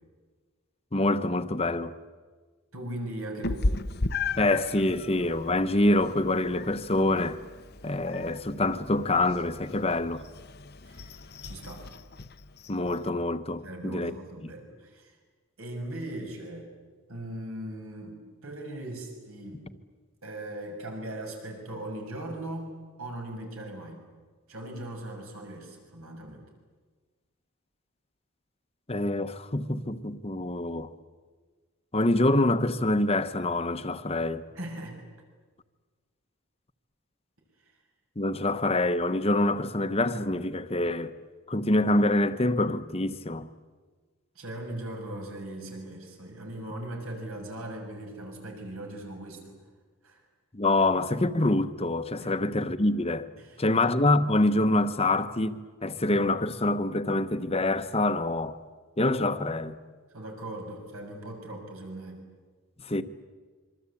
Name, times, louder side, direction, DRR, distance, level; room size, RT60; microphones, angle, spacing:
voice 1, 0.9-1.9 4.4-7.4 7.8-10.2 12.7-14.1 28.9-30.9 31.9-34.4 38.2-41.1 41.5-43.5 50.5-53.3 53.6-58.6 59.0-59.8 62.8-63.0, left 2 dB, 25° left, 1.0 m, -26 dB
voice 2, 2.7-3.7 10.8-11.1 11.4-11.9 13.6-15.2 15.6-16.7 17.1-18.1 18.4-19.7 20.2-22.7 23.0-24.0 24.5-26.4 34.5-35.0 37.6-37.7 44.3-49.5 50.0-50.2 52.2-52.3 53.4-53.6 60.1-62.3, right 1 dB, 75° right, 6.5 m, -39 dB
Meow, 3.4-13.1, left 3 dB, 50° left, 0.9 m, -36 dB
26.0 x 25.0 x 8.5 m
head